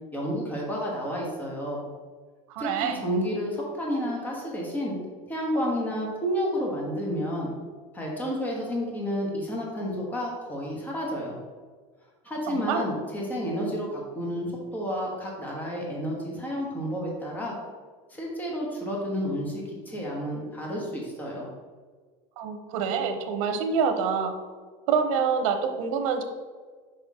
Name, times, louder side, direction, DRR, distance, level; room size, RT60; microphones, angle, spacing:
voice 1, 0.1-1.8 2.6-4.9 5.3-7.5 7.9-11.4 12.2-17.6 18.1-21.5, equal, 10° left, -2 dB, 1.2 m, -30 dB
voice 2, 2.5-3.0 12.5-12.8 22.4-24.3 24.9-26.2, right 6 dB, 85° right, 7 dB, 0.8 m, -26 dB
5.9 x 4.9 x 3.6 m, 1.5 s
cardioid pair, 165°, 17 cm